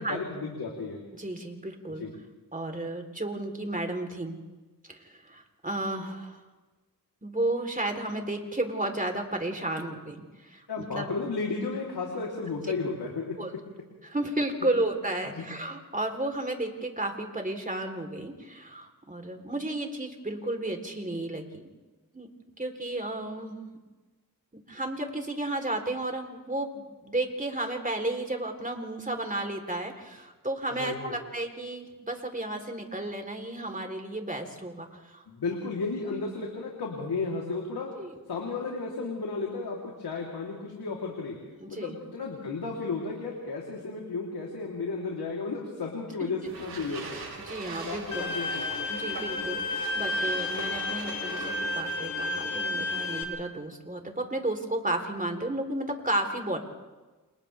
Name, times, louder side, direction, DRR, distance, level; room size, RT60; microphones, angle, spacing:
voice 1, 0.0-1.0 2.0-2.1 10.7-13.4 15.4-15.5 30.7-31.2 35.3-37.9 38.3-41.4 41.7-47.2 47.8-48.8, left 4 dB, 85° left, -2 dB, 3.5 m, -33 dB
voice 2, 1.1-2.1 2.5-4.4 4.9-6.4 7.2-11.1 13.4-13.6 14.0-21.6 22.1-22.3 22.6-23.6 24.7-35.2 38.0-38.1 41.6-42.0 46.2-46.3 47.4-48.2 48.9-49.6 49.9-56.6, right 1 dB, 20° right, 4 dB, 3.7 m, -33 dB
sound 1, 46.5-52.0, right 4 dB, 85° right, 4.9 m, -42 dB
Bowed string instrument, 48.1-53.2, left 2 dB, 45° left, 3.9 m, -31 dB
29.0 x 28.5 x 3.5 m, 1.2 s
cardioid pair, 65°, 37 cm